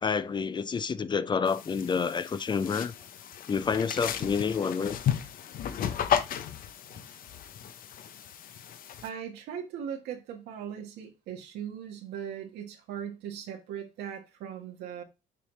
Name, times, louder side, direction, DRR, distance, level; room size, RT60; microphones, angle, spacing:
voice 1, 0.0-2.9 3.5-5.0, left 6 dB, 25° left, 0.5 m, -28 dB
sound 1, 1.5-9.1, left 9 dB, 55° left, 0.8 m, -34 dB
voice 2, 9.0-15.0, right 8 dB, 85° right, 1.5 m, -39 dB
6.8 x 4.7 x 3.2 m
cardioid pair, 110°, 17 cm